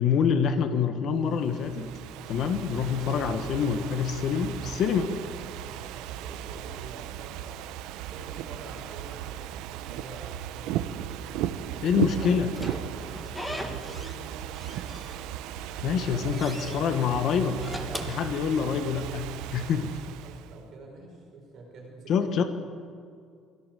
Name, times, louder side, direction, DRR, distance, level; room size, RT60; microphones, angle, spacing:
voice 1, 0.0-1.9 2.3-5.1 11.8-12.5 15.8-17.6 18.0-20.0 22.1-22.4, left 7 dB, 45° left, 8 dB, 1.5 m, -26 dB
Ocean / Fireworks, 1.3-20.6, right 11 dB, 80° right, 1.0 m, -36 dB
voice 2, 3.3-3.8 5.0-7.5 8.1-11.1 11.7-12.8 13.2-15.3 15.8-16.3 16.8-17.3 20.2-22.5, right 3 dB, 45° right, -1 dB, 5.5 m, -47 dB
Slam / Squeak, 12.2-14.2 14.5-15.5 15.9-16.8 17.4-19.0, left 1 dB, 5° left, 1.6 m, -40 dB
23.5 x 17.0 x 7.7 m, 2.3 s
cardioid pair, 170°, 0 cm